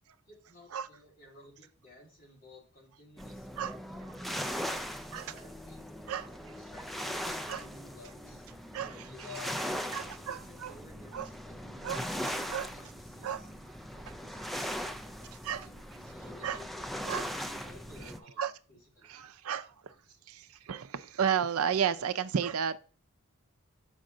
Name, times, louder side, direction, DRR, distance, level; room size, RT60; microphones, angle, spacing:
voice 1, 0.3-6.1 6.4-8.5 8.8-13.5 14.0-15.6 16.0-18.4 18.7-19.4 20.1-20.2, left 3 dB, 40° left, 2.3 m, -54 dB
sound 1, 3.2-18.2, equal, ahead, 0.4 m, -39 dB
voice 2, 6.1-6.4 7.5-7.6 8.7-9.1 9.9-10.7 11.1-11.3 11.8-12.1 12.5-12.7 13.2-14.5 15.4-15.7 16.4-16.6 17.1-17.3 18.0-18.1 18.4-18.5 19.0-20.0 20.3-22.8, right 8 dB, 80° right, 0.5 m, -33 dB
6.4 x 5.3 x 3.8 m
head